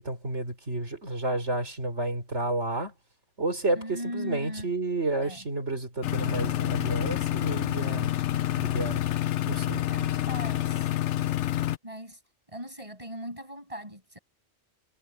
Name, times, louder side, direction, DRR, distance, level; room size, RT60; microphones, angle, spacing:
voice 1, 0.0-2.9 3.4-8.1 8.6-9.0 9.4-10.1, right 2 dB, 75° right, 5.1 m, -31 dB
voice 2, 3.7-4.7 5.2-5.5 9.9-11.0 11.8-12.2 12.5-14.2, equal, 30° right, 7.6 m, -39 dB
sound 1, 6.0-11.8, left 13 dB, 85° left, 1.0 m, -28 dB
omnidirectional pair, 1.2 m